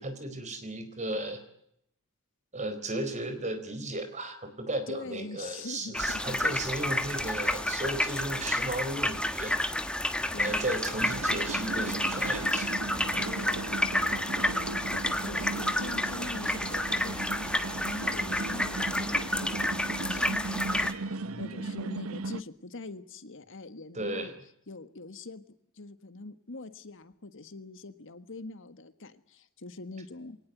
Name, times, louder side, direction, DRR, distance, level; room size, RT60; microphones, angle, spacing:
voice 1, 0.0-1.4 2.5-9.6 10.4-12.7 13.1-13.3 21.1-21.6 23.9-24.3, right 1 dB, 35° right, 8 dB, 4.4 m, -35 dB
voice 2, 4.9-6.4 10.3-11.0 13.3-24.3 24.7-25.5 25.7-30.4, left 3 dB, 60° left, 12 dB, 1.5 m, -44 dB
sound 1, 5.9-20.9, left 1 dB, 5° left, 1.4 m, -30 dB
sound 2, 11.0-22.4, right 3 dB, 70° right, 0.8 m, -37 dB
23.0 x 19.0 x 9.4 m, 0.73 s
head